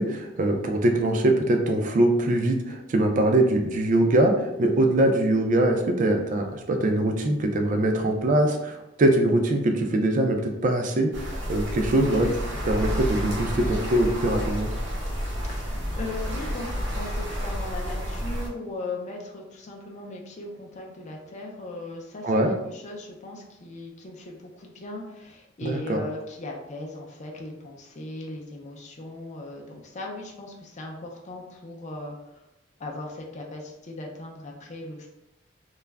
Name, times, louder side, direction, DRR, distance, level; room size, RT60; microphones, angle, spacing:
voice 1, 0.0-12.3 12.6-14.7 22.2-22.5 25.6-26.0, right 1 dB, 45° right, 4 dB, 0.4 m, -22 dB
sound 1, 11.1-18.5, equal, 75° right, 0.7 m, -30 dB
voice 2, 15.3-32.4 32.8-35.1, left 2 dB, 40° left, 0 dB, 0.4 m, -38 dB
2.3 x 2.0 x 3.3 m, 0.90 s
head